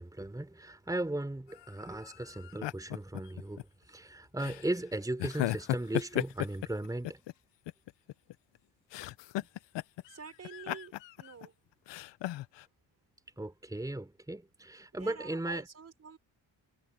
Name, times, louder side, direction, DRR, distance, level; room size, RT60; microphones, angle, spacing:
voice 1, 0.0-7.2 13.4-15.7, right 1 dB, 10° right, 3.6 m, -37 dB
sound 1, 1.5-3.6 4.4-4.7 5.2-7.3 7.7-8.6 8.9-10.2 10.4-11.5 11.9-12.6, left 16 dB, 80° left, 0.8 m, -36 dB
voice 2, 10.1-10.9 11.2-11.5 15.0-16.2, right 6 dB, 35° right, 4.8 m, -48 dB
cardioid pair, 130°, 43 cm